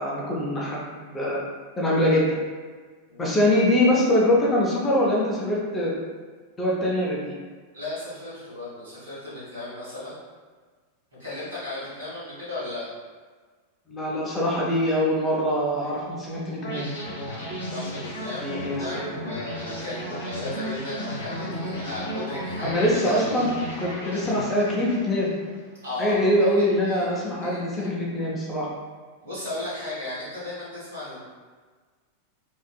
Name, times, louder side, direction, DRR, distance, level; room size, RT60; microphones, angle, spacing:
voice 1, 0.0-1.4 1.8-2.3 3.2-5.9 6.6-7.3 13.9-16.9 18.4-18.8 22.6-23.5 23.8-25.3 26.0-28.7, left 1 dB, 20° left, -5 dB, 0.6 m, -23 dB
voice 2, 7.7-10.2 11.2-12.9 15.7-16.1 17.7-23.2 25.8-27.9 29.2-31.2, left 2 dB, 75° right, -9 dB, 1.3 m, -35 dB
sound 1, 16.6-25.7, equal, 65° left, 0.8 m, -34 dB
2.5 x 2.5 x 2.2 m, 1.5 s
figure-of-eight pair, 90°, 0 cm